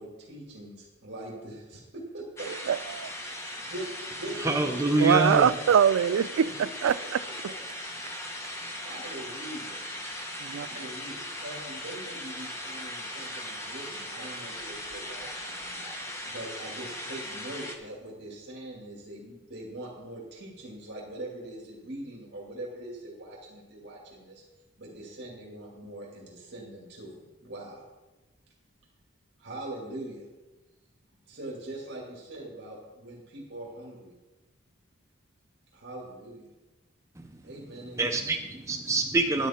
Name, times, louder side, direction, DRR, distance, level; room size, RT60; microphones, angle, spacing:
voice 1, 0.0-2.5 3.2-3.8 4.2-5.1 6.4-6.5 7.0-7.1 8.8-9.8 10.6-15.9 16.2-24.4 24.8-27.8 29.4-30.3 31.3-34.2 35.7-36.5 37.4-38.2, right 1 dB, 55° right, 2.3 m, -42 dB
sound 1, 2.4-17.8, left 1 dB, 15° left, 1.1 m, -38 dB
voice 2, 2.7-3.1 5.0-7.2 10.4-10.7, right 8 dB, 90° right, 0.3 m, -23 dB
voice 3, 4.4-5.5 37.2-37.4 38.0-39.5, right 2 dB, 15° right, 0.5 m, -26 dB
11.0 x 10.5 x 4.3 m
head